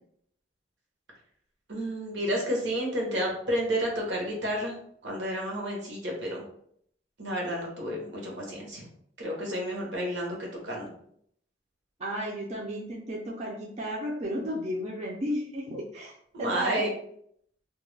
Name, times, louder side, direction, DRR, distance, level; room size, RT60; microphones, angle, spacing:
voice 1, 1.7-4.7 5.0-6.4 7.2-8.8 9.2-10.4 10.6-10.9 16.3-16.9, equal, 75° right, -1 dB, 0.8 m, -30 dB
voice 2, 12.0-16.1 16.4-16.8, equal, 35° right, -3 dB, 0.4 m, -33 dB
2.2 x 2.1 x 3.1 m, 0.67 s
head